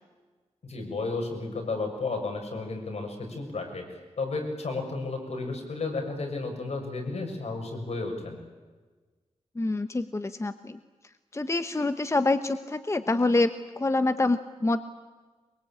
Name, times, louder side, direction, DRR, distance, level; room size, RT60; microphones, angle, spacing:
voice 1, 0.6-3.8 4.2-8.4, left 3 dB, 75° left, 2 dB, 6.5 m, -33 dB
voice 2, 9.6-10.8 11.3-14.8, left 2 dB, 25° left, 10 dB, 0.9 m, -26 dB
23.5 x 23.0 x 8.8 m, 1.3 s
wide cardioid pair, 110°, 11 cm